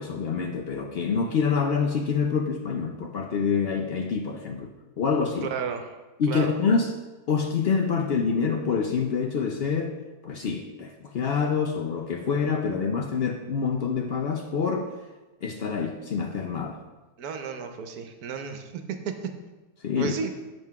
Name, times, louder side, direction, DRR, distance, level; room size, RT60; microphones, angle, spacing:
voice 1, 0.0-4.7 5.0-5.5 6.2-6.9 7.3-10.0 10.2-14.9 15.4-16.8 19.8-20.1, left 5 dB, 70° left, 3 dB, 0.5 m, -26 dB
voice 2, 5.4-5.9 6.3-6.6 17.2-19.3 20.0-20.3, right 6 dB, 75° right, 6 dB, 1.2 m, -33 dB
7.6 x 5.2 x 4.6 m, 1.2 s
omnidirectional pair, 1.7 m